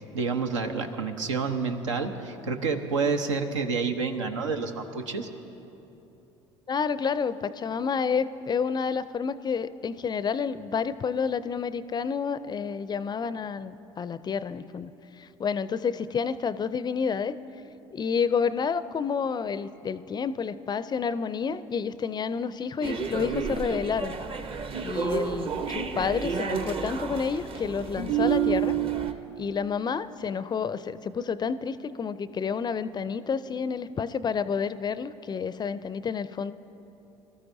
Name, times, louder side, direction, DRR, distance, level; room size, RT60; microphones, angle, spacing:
voice 1, 0.1-5.3, right 4 dB, 80° right, 6 dB, 0.9 m, -29 dB
voice 2, 6.7-14.9 15.2-17.4 17.9-24.1 24.8-28.8 29.4-36.5, left 6 dB, 25° left, 15 dB, 0.4 m, -29 dB
sound 1, 22.8-29.1, right 7 dB, 35° right, 0.9 m, -29 dB
23.0 x 13.5 x 2.7 m, 3.0 s
hypercardioid pair, 65°, 16 cm